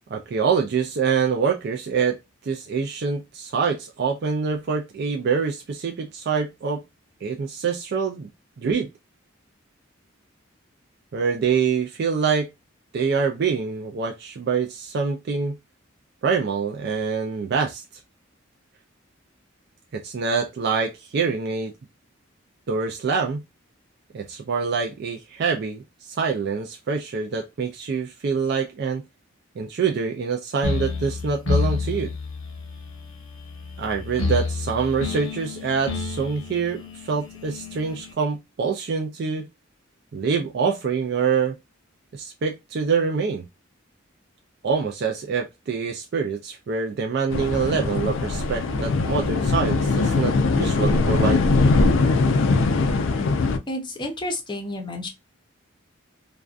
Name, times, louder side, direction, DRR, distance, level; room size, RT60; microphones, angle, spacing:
voice 1, 0.1-2.2 2.5-6.8 7.2-8.3 8.6-8.9 11.1-12.5 12.9-15.6 16.2-17.8 19.9-21.7 22.7-23.4 24.1-29.0 29.6-32.1 33.8-39.5 40.1-41.5 42.1-43.5 44.6-51.4, right 5 dB, 55° right, 0.3 m, -25 dB
sound 1, 30.6-38.1, left 4 dB, 90° left, 0.8 m, -29 dB
sound 2, 47.3-53.6, left 3 dB, 70° left, 0.4 m, -21 dB
voice 2, 53.7-55.1, left 1 dB, 25° left, 0.6 m, -30 dB
2.5 x 2.2 x 2.4 m
head